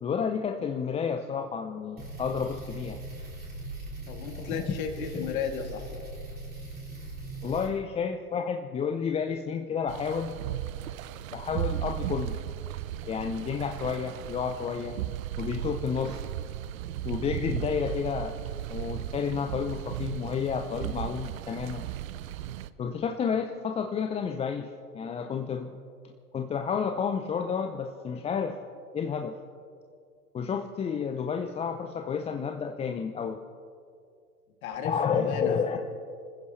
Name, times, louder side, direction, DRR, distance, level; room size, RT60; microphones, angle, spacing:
voice 1, 0.0-3.0 4.3-4.7 5.1-5.3 7.4-10.3 11.3-12.4 13.1-15.0 15.4-16.2 17.0-18.4 18.7-21.9 22.8-25.8 26.3-28.6 28.9-29.4 30.3-33.4 34.8-35.8, left 6 dB, 15° left, 5 dB, 0.5 m, -31 dB
sound 1, 2.0-7.7, right 2 dB, 20° right, 5.0 m, -40 dB
voice 2, 4.1-5.9 34.6-35.8, left 7 dB, 60° left, 2 dB, 2.6 m, -34 dB
sound 2, 9.9-22.7, right 12 dB, 60° right, 0.7 m, -36 dB
26.5 x 15.0 x 3.2 m, 2.3 s
figure-of-eight pair, 95°, 46 cm